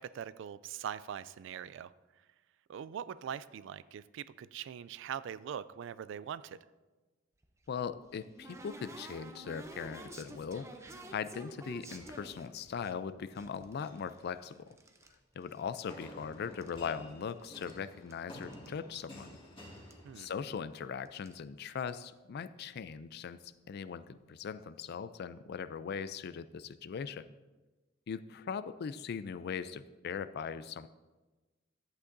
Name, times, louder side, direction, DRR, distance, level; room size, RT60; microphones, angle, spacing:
voice 1, 0.0-1.9 2.7-6.6 20.0-20.3, right 8 dB, 65° right, 16 dB, 0.3 m, -42 dB
sound 1, 7.4-12.9 13.4-15.1 15.4-16.2 16.4-17.8 18.1-18.2 18.4-18.7 19.0-19.1 19.9-20.0 20.3-20.5 21.1-21.3, right 1 dB, 15° right, 0.6 m, -50 dB
voice 2, 7.7-10.7 11.1-14.7 15.3-19.4 20.2-27.3 28.1-30.9, left 6 dB, 55° left, 14 dB, 0.3 m, -40 dB
sound 2, 11.9-13.0 13.6-14.1 15.9-20.7, left 1 dB, 30° left, 1.7 m, -52 dB
11.0 x 8.3 x 2.6 m, 1.2 s
head